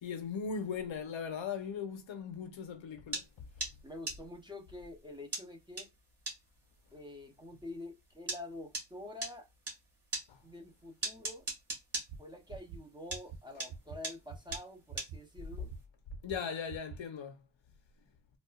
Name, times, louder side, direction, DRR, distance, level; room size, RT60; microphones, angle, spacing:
voice 1, 0.0-3.5 10.3-10.4 16.2-17.4, left 6 dB, 85° left, 0.8 m, -39 dB
sound 1, 3.1-9.8 10.1-12.9 13.1-15.7, right 2 dB, 30° right, 2.0 m, -39 dB
voice 2, 3.8-5.9 6.9-9.5 10.4-11.5 12.2-15.7, left 2 dB, 10° right, 0.6 m, -47 dB
sound 2, 12.1-12.2 12.5-12.8 13.1-13.4 13.7-14.0 14.3-14.6 14.9-15.2 15.5-15.8 16.1-16.4 16.7-17.0, right 6 dB, 90° right, 0.6 m, -45 dB
4.2 x 2.4 x 2.3 m
wide cardioid pair, 150°, 45 cm